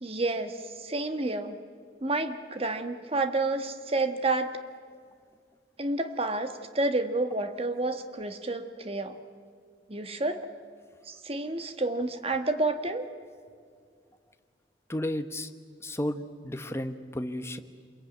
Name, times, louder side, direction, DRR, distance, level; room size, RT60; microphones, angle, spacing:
voice 1, 0.0-1.6 2.0-4.5 5.8-9.2 9.9-10.5 11.1-13.0, right 2 dB, 35° right, 8 dB, 1.5 m, -30 dB
voice 2, 14.9-15.5 15.8-17.6, left 1 dB, 15° left, 8 dB, 1.1 m, -33 dB
27.0 x 22.0 x 9.2 m, 2.1 s
head